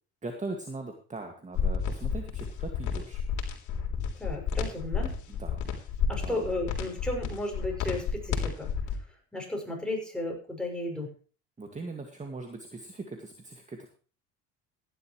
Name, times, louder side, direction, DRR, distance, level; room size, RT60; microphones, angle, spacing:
voice 1, 0.2-3.2 5.3-5.6 6.2-6.6 11.6-13.9, right 3 dB, 20° right, 4 dB, 2.1 m, -40 dB
sound 1, 1.5-8.9, left 6 dB, 55° left, 3.7 m, -31 dB
voice 2, 4.2-5.1 6.1-8.7 9.3-11.1, left 1 dB, ahead, -1 dB, 6.7 m, -34 dB
16.0 x 11.0 x 3.2 m, 0.39 s
supercardioid pair, 85°, 34 cm